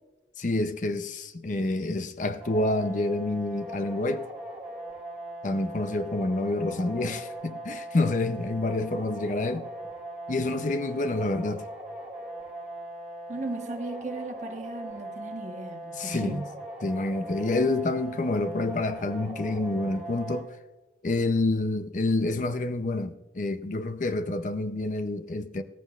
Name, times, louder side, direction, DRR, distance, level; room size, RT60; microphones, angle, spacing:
voice 1, 0.4-4.3 5.4-9.7 10.3-11.6 15.9-16.4 16.8-20.5 21.0-25.6, left 2 dB, 45° left, 0.6 m, -28 dB
sound 1, 2.4-20.4, right 1 dB, 5° right, 4.4 m, -40 dB
voice 2, 13.3-16.5, right 2 dB, 40° right, 1.2 m, -36 dB
16.0 x 14.5 x 2.4 m
head